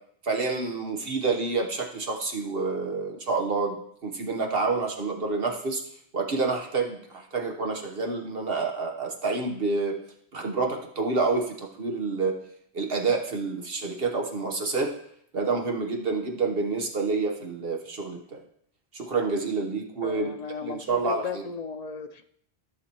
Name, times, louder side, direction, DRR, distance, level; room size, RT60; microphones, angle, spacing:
voice 1, 0.2-3.8 4.0-5.8 6.1-9.9 10.3-12.4 12.7-14.9 15.3-18.4 18.9-20.3 20.6-21.4, right 4 dB, 65° right, 2 dB, 1.3 m, -28 dB
voice 2, 20.0-22.2, left 6 dB, 55° left, 8 dB, 0.4 m, -36 dB
14.0 x 6.5 x 2.9 m, 0.68 s
omnidirectional pair, 1.1 m